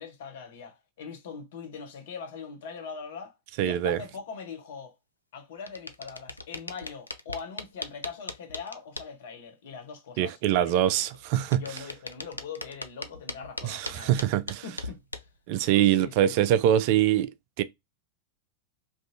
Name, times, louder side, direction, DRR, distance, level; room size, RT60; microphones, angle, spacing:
voice 1, 0.0-3.3 3.6-5.0 5.3-11.1 11.5-14.1 14.6-15.0 15.7-16.4, left 5 dB, 55° left, 0.9 m, -41 dB
voice 2, 3.6-4.0 10.2-11.6 13.6-14.6 15.5-17.3 17.6-17.7, right 11 dB, 45° right, 0.3 m, -23 dB
sound 1, 5.7-9.1 11.1-15.4, left 2 dB, 85° left, 0.3 m, -38 dB
3.4 x 2.5 x 2.6 m
figure-of-eight pair, 90°, 0 cm